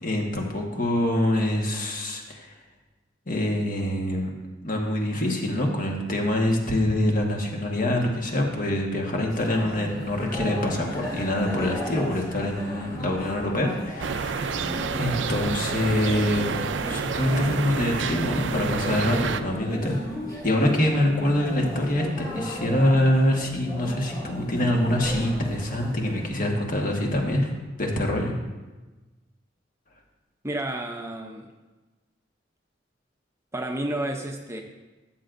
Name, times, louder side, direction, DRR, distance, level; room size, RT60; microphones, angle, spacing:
voice 1, 0.0-2.5 3.3-4.3 4.6-16.4 16.9-20.0 20.4-27.5 27.8-28.3, left 1 dB, 50° left, 0 dB, 1.4 m, -25 dB
sound 1, 9.3-26.3, equal, 25° left, 2.3 m, -36 dB
sound 2, 14.0-19.4, right 5 dB, 85° right, 0.4 m, -29 dB
voice 2, 30.4-31.5 33.5-34.6, right 1 dB, 15° right, 3 dB, 0.6 m, -31 dB
13.0 x 7.6 x 2.6 m, 1.2 s
head